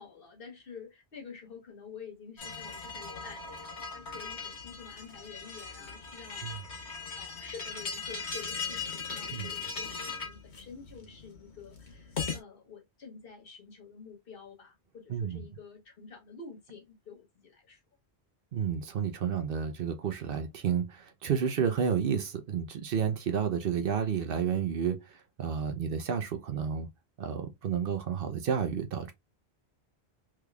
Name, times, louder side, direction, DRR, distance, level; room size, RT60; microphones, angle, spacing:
voice 1, 0.0-6.8 7.2-17.8, left 5 dB, 60° left, 1.2 m, -49 dB
sound 1, 2.4-12.4, left 5 dB, 80° left, 1.4 m, -39 dB
voice 2, 15.1-15.4 18.5-26.9 27.2-29.1, right 7 dB, 60° right, 0.8 m, -31 dB
3.6 x 3.2 x 2.2 m
omnidirectional pair, 1.1 m